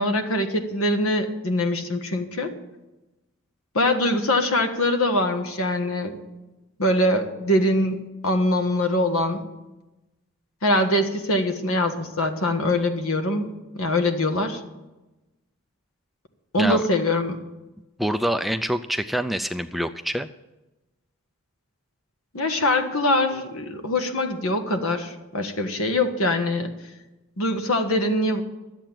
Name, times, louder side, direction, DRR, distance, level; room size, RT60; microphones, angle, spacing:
voice 1, 0.0-2.5 3.7-6.2 6.8-9.4 10.6-13.5 13.8-14.6 16.5-17.4 22.3-26.7 27.4-28.4, left 1 dB, 70° left, 6 dB, 1.5 m, -23 dB
voice 2, 18.0-20.3, right 1 dB, ahead, 8 dB, 0.3 m, -25 dB
12.0 x 7.8 x 9.0 m, 1.0 s
head